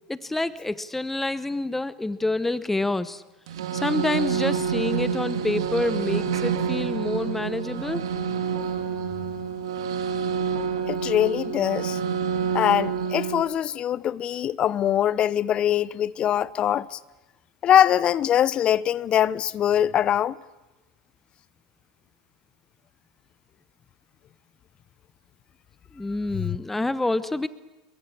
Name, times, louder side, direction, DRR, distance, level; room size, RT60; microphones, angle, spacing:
voice 1, 0.1-3.2 3.7-8.1 25.9-27.5, left 2 dB, 10° left, 0.9 m, -27 dB
sound 1, 3.5-13.4, right 6 dB, 75° right, 2.3 m, -28 dB
voice 2, 10.9-12.0 12.5-17.0 17.6-20.4 26.3-26.6, left 10 dB, 40° left, 0.8 m, -22 dB
24.0 x 22.5 x 8.6 m
hypercardioid pair, 85°, 3 cm